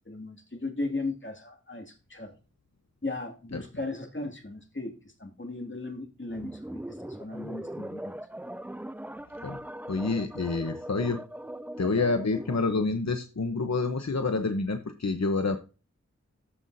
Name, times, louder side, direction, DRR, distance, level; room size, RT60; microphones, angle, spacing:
voice 1, 0.0-2.3 3.0-4.9 5.2-6.8 7.2-8.2, left 2 dB, 40° left, 4 dB, 2.4 m, -36 dB
sound 1, 6.3-12.8, right 1 dB, 5° right, 0.4 m, -40 dB
voice 2, 9.9-11.2 11.8-15.6, left 3 dB, 65° left, 7 dB, 0.9 m, -28 dB
14.0 x 5.6 x 2.7 m, 0.31 s
wide cardioid pair, 50°, 29 cm